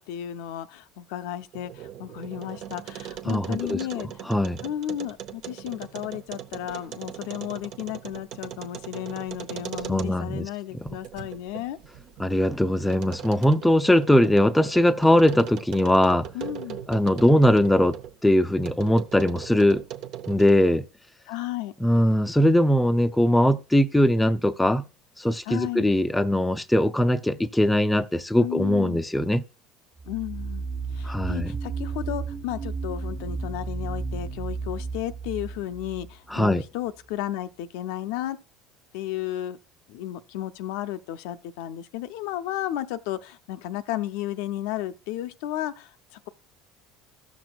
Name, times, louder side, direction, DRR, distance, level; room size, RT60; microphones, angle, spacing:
voice 1, 0.0-4.1 4.6-11.8 16.3-16.8 21.3-21.7 25.4-25.9 28.4-29.0 30.1-38.4 38.9-39.6 39.9-46.3, left 13 dB, 80° left, 0.4 m, -33 dB
sound 1, 1.4-10.4 10.9-18.2 18.6-20.7, right 10 dB, 60° right, 0.7 m, -40 dB
voice 2, 3.3-3.8 4.3-4.6 9.9-10.5 12.2-16.3 16.9-19.8 20.3-20.8 21.8-24.8 25.2-29.4 31.0-31.5 36.3-36.6, left 1 dB, 5° left, 0.4 m, -21 dB
sound 2, 30.0-36.6, right 4 dB, 35° right, 1.1 m, -33 dB
14.0 x 6.0 x 2.3 m
supercardioid pair, 115°, 0 cm